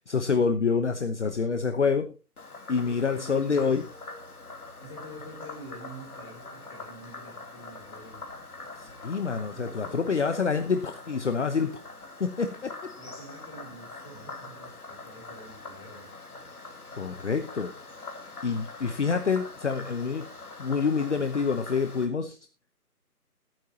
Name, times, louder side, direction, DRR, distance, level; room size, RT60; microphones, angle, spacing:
voice 1, 0.0-2.1 2.7-3.8 8.8-11.8 12.2-12.9 17.0-17.8 18.4-20.3 20.6-22.4, left 5 dB, 50° left, 9 dB, 1.1 m, -27 dB
Frog, 2.4-22.1, left 3 dB, 70° left, 3.2 m, -44 dB
voice 2, 2.8-3.9 4.8-8.2 9.5-10.1 13.0-16.1, right 1 dB, 15° left, 4 dB, 3.2 m, -46 dB
19.5 x 9.3 x 2.9 m, 0.28 s
figure-of-eight pair, 165°, 46 cm